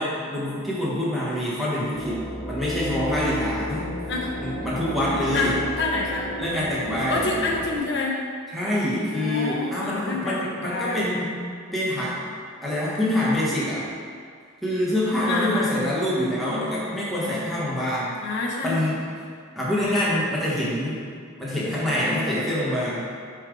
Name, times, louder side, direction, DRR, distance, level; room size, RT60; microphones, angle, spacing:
voice 1, 0.0-3.9 4.4-5.5 6.4-7.4 8.5-11.3 11.7-12.2 12.6-13.9 14.6-18.1 18.6-19.0 19.5-21.0 21.4-23.1, left 1 dB, ahead, -9 dB, 1.4 m, -25 dB
sound 1, 1.9-7.8, equal, 35° left, 1.3 m, -32 dB
voice 2, 5.3-6.3 7.1-8.2 9.2-11.0 15.3-15.7 18.2-18.8 19.8-20.0, left 3 dB, 55° left, -2 dB, 1.0 m, -27 dB
7.2 x 3.4 x 5.0 m, 2.1 s
head